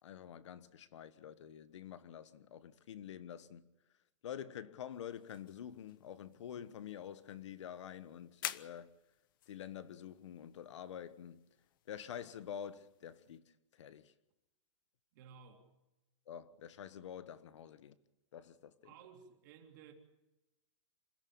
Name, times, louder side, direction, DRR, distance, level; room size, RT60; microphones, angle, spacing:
voice 1, 0.0-3.7 4.2-8.9 9.5-11.4 11.9-14.1 16.3-18.0 18.3-18.9, left 9 dB, 70° left, 1.3 m, -48 dB
sound 1, 4.9-13.4, left 13 dB, 45° left, 0.8 m, -52 dB
voice 2, 15.1-15.6 18.8-19.9, right 7 dB, 40° right, 3.2 m, -56 dB
27.0 x 13.5 x 8.7 m
supercardioid pair, 180°, 16 cm